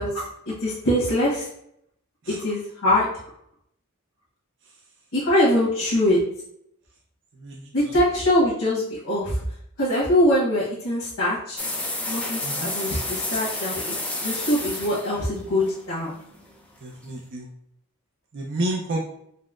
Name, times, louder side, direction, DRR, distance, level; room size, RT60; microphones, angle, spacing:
voice 1, 0.0-1.5 2.3-3.1 5.1-6.2 7.7-9.4 9.8-11.6 12.1-16.1, left 1 dB, 85° left, -8 dB, 1.1 m, -23 dB
voice 2, 7.3-8.0 12.4-12.8 16.8-17.5 18.3-19.1, right 1 dB, 55° right, -1 dB, 0.5 m, -31 dB
sound 1, 11.6-16.5, left 1 dB, 5° left, 0.3 m, -30 dB
4.1 x 2.0 x 2.3 m, 0.72 s
head